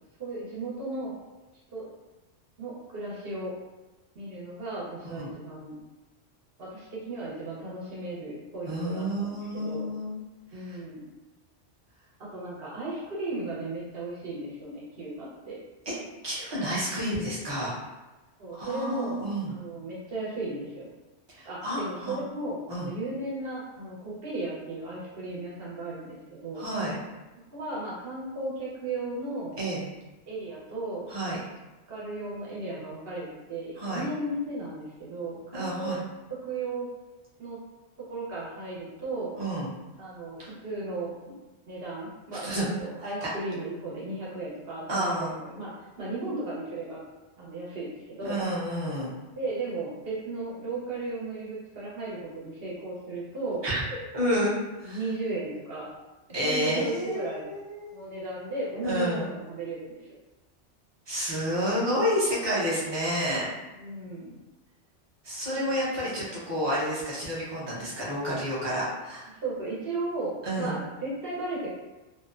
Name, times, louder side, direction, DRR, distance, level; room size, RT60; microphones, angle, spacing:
voice 1, 0.2-1.1 1.7-1.9 2.6-3.5 4.1-5.8 6.6-9.9 10.5-11.1 12.2-15.6 18.4-19.2 19.5-20.9 21.4-26.6 27.5-29.6 30.3-31.3 31.9-36.0 36.4-36.9 37.4-37.6 38.1-39.3 40.0-41.3 41.7-45.7 46.0-47.0 47.4-48.4 49.4-53.6 54.8-55.9 56.4-57.4 57.9-60.0 63.8-64.3 66.0-66.1 69.4-71.7, right 2 dB, 60° right, -6 dB, 1.0 m, -35 dB
voice 2, 8.7-10.2 10.5-10.8 15.9-16.0 16.2-17.8 18.5-19.6 21.3-22.2 22.7-22.9 26.5-27.0 29.6-29.8 31.1-31.4 33.8-34.1 35.5-36.0 39.4-39.7 40.4-40.5 42.4-42.7 43.2-43.3 44.9-45.3 48.2-49.1 53.6-53.8 54.1-54.5 54.8-55.0 56.3-57.9 58.8-59.3 61.1-63.5 65.2-69.3 70.4-70.8, equal, 25° right, -7 dB, 0.7 m, -30 dB
2.6 x 2.1 x 2.4 m, 1.1 s
omnidirectional pair, 1.2 m